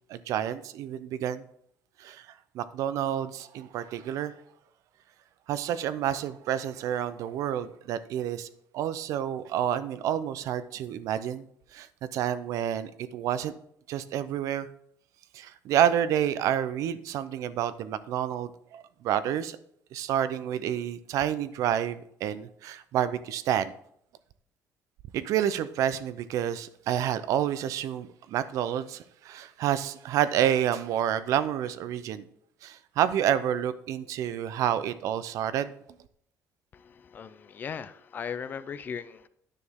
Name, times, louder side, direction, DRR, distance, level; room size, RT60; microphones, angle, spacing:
voice 1, 0.1-1.4 2.0-2.3 2.5-4.3 5.5-11.4 11.7-11.9 12.1-13.6 13.9-14.7 15.3-19.6 19.9-23.7 25.1-32.2 32.6-35.7, right 10 dB, 65° right, 14 dB, 0.5 m, -29 dB
voice 2, 36.7-39.3, left 7 dB, 30° left, 14 dB, 0.4 m, -38 dB
9.8 x 6.4 x 3.6 m, 0.69 s
cardioid pair, 155°, 6 cm